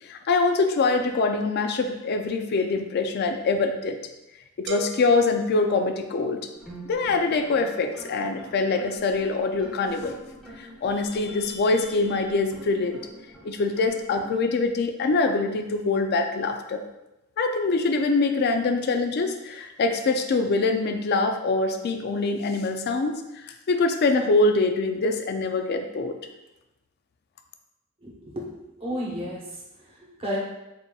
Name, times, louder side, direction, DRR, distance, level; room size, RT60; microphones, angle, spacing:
voice 1, 0.0-4.0 4.6-6.5 6.8-10.2 10.6-13.0 13.4-16.8 17.4-26.2, left 3 dB, 50° left, 6 dB, 0.4 m, -24 dB
sound 1, 4.7-6.5, right 1 dB, 55° right, 0.4 m, -39 dB
sound 2, 6.5-14.3, right 1 dB, ahead, 0.8 m, -46 dB
voice 2, 28.0-29.6 30.0-30.4, equal, 30° right, -3 dB, 1.0 m, -33 dB
4.0 x 3.8 x 2.3 m, 0.95 s
head